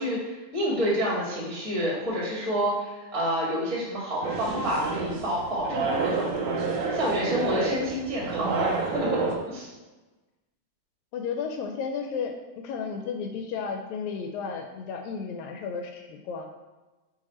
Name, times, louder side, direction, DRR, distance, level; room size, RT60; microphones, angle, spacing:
voice 1, 0.0-6.3 6.9-9.7, equal, 15° right, -5 dB, 1.4 m, -29 dB
sound 1, 4.2-9.3, right 4 dB, 80° right, 2.1 m, -29 dB
voice 2, 11.1-16.5, left 5 dB, 80° left, 4 dB, 1.9 m, -33 dB
5.1 x 4.9 x 4.2 m, 1.2 s
omnidirectional pair, 3.3 m